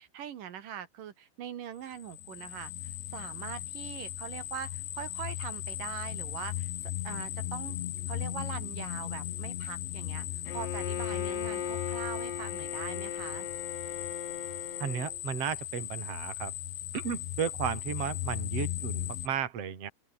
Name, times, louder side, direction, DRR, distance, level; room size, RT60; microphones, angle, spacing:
voice 1, 0.0-7.8 8.1-13.5, right 9 dB, 60° right, 2.6 m, -42 dB
sound 1, 1.9-19.3, left 12 dB, 70° left, 4.0 m, -37 dB
Bowed string instrument, 10.5-15.2, left 8 dB, 50° left, 2.1 m, -38 dB
voice 2, 14.8-16.5 16.9-19.9, right 8 dB, 35° right, 3.5 m, -34 dB
open air
omnidirectional pair, 5.4 m